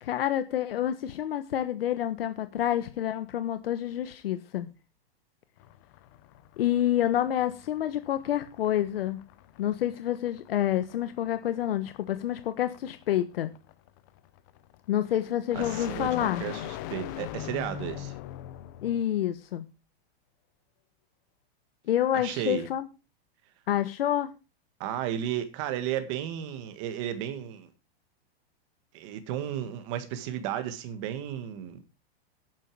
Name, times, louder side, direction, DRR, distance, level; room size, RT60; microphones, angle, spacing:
voice 1, 0.0-4.7 6.6-9.2 9.6-13.5 14.9-16.4 18.8-19.6 21.9-22.9 23.7-24.3, left 11 dB, 65° left, 1.2 m, -28 dB
sound 1, 5.6-19.1, left 11 dB, 20° left, 0.5 m, -42 dB
voice 2, 15.5-18.1 22.1-22.7 24.8-27.7 28.9-31.8, right 11 dB, 30° right, 1.7 m, -34 dB
11.5 x 9.4 x 4.8 m
supercardioid pair, 180°, 31 cm